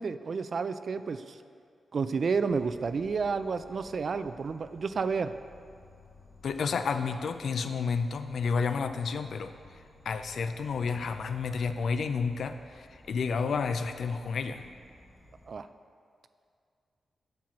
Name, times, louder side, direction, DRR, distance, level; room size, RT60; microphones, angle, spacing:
voice 1, 0.0-1.4 1.9-5.3 15.5-15.7, right 5 dB, 55° right, 11 dB, 0.4 m, -30 dB
Insect, 2.5-15.5, left 1 dB, 30° left, 1.4 m, -56 dB
voice 2, 6.4-9.5 10.1-14.6, left 5 dB, 75° left, 9 dB, 0.5 m, -31 dB
7.6 x 5.6 x 5.9 m, 2.2 s
cardioid pair, 90°, 0 cm